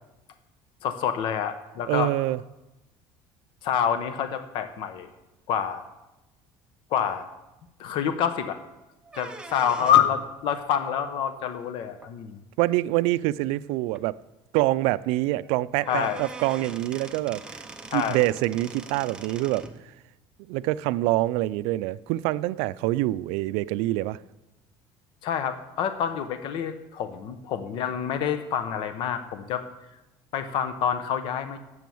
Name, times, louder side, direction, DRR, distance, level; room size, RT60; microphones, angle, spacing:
voice 1, 0.8-2.1 3.6-5.1 5.5-5.8 6.9-7.2 7.8-8.6 9.1-12.4 15.9-16.2 17.9-18.2 25.2-29.6 30.3-31.6, left 8 dB, 60° left, 0.8 m, -27 dB
voice 2, 1.9-2.4 12.6-14.2 14.5-17.4 17.9-19.7 20.5-24.2, right 17 dB, 90° right, 0.4 m, -25 dB
sound 1, 9.0-10.2 12.0-12.1 13.0-13.1 13.5-13.6 13.9-14.0 15.4-15.5 15.8-19.8, right 3 dB, 10° right, 0.7 m, -41 dB
9.2 x 7.8 x 7.1 m
cardioid pair, 155°, 10 cm